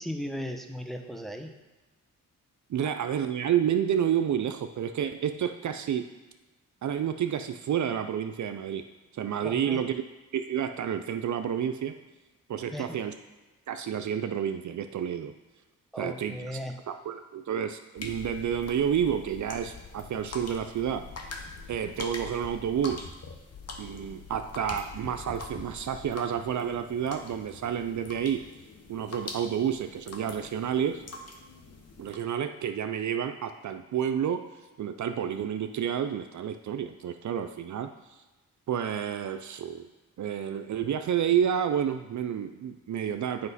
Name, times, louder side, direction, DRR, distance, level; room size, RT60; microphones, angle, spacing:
voice 1, 0.0-1.5 2.8-2.9 9.4-9.8 12.7-13.0 15.9-16.8, equal, ahead, 4 dB, 0.8 m, -37 dB
voice 2, 2.7-6.1 6.8-8.8 9.1-10.1 10.3-11.9 12.5-13.1 13.7-15.3 16.0-16.6 16.9-21.1 21.7-23.1 23.8-28.4 28.9-31.0 32.0-34.5 34.8-38.2 38.7-39.9 40.2-43.5, right 8 dB, 55° right, 8 dB, 0.5 m, -30 dB
sound 1, 18.0-32.1, left 3 dB, 45° left, 1.1 m, -44 dB
7.8 x 5.1 x 4.1 m, 1.1 s
cardioid pair, 55°, 34 cm